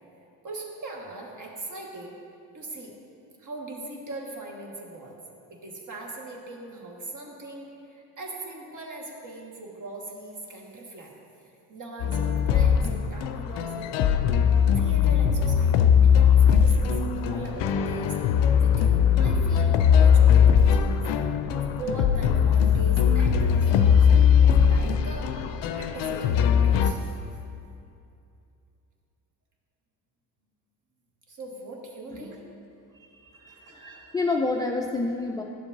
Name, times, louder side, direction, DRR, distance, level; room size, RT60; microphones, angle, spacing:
voice 1, 0.4-2.2 2.5-3.0 3.4-5.2 5.5-11.1 11.4-13.9 14.7-15.8 16.0-21.0 21.5-25.4 25.7-27.2 31.3-32.4 33.3-34.2, right 2 dB, 40° right, 0 dB, 1.6 m, -40 dB
sound 1, 12.0-26.9, left 7 dB, 60° left, 0.6 m, -20 dB
voice 2, 33.5-35.4, left 3 dB, 10° left, 1 dB, 0.4 m, -28 dB
11.0 x 7.0 x 2.7 m, 2.6 s
hypercardioid pair, 65°, 49 cm